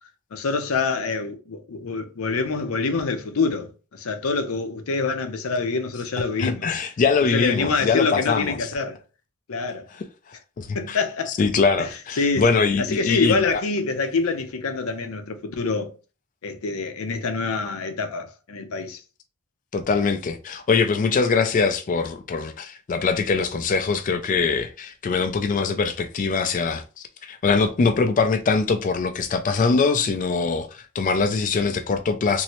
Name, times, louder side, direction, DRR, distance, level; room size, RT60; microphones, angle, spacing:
voice 1, 0.3-6.6 7.3-9.0 9.5-9.9 10.7-11.3 11.8-11.9 12.2-12.4 12.8-15.9 16.4-19.0, left 4 dB, 90° left, 0.6 m, -26 dB
voice 2, 6.4-8.7 9.9-11.0 11.3-13.6 19.7-32.4, left 4 dB, 40° left, 0.3 m, -23 dB
3.1 x 2.7 x 2.9 m
head